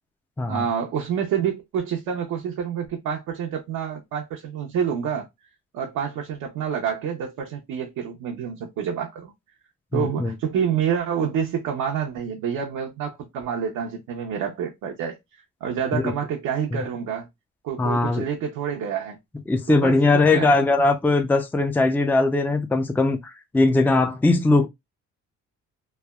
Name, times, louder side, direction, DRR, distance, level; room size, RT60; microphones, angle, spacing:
voice 1, 0.5-5.3 5.7-9.3 9.9-15.2 15.6-17.3 17.6-19.2 19.7-20.0 20.3-20.6, right 7 dB, 80° right, 0.7 m, -28 dB
voice 2, 9.9-10.3 15.9-16.1 16.7-16.8 17.8-18.2 19.5-24.7, left 3 dB, 5° left, 0.4 m, -20 dB
3.2 x 2.2 x 2.2 m
cardioid pair, 90°, 30 cm